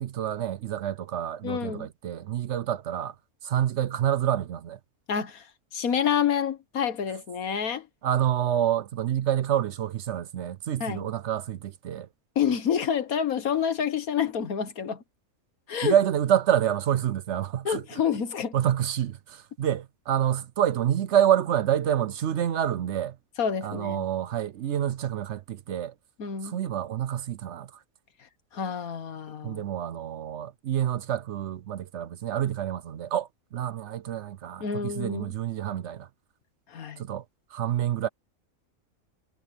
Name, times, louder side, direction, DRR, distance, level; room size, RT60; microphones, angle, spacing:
voice 1, 0.0-3.1 3.4-4.8 8.0-12.1 15.8-18.0 18.5-23.2 23.6-25.9 26.4-27.7 29.4-36.1 37.0-37.2 37.5-38.1, right 10 dB, 60° right, 0.8 m, -27 dB
voice 2, 1.4-1.9 5.1-5.4 5.7-7.9 10.8-11.1 12.4-15.0 15.7-15.9 17.7-18.6 23.4-24.1 26.2-26.6 28.5-29.6 34.6-35.3 36.7-37.0, left 7 dB, 85° left, 1.8 m, -28 dB
omnidirectional pair, 1.5 m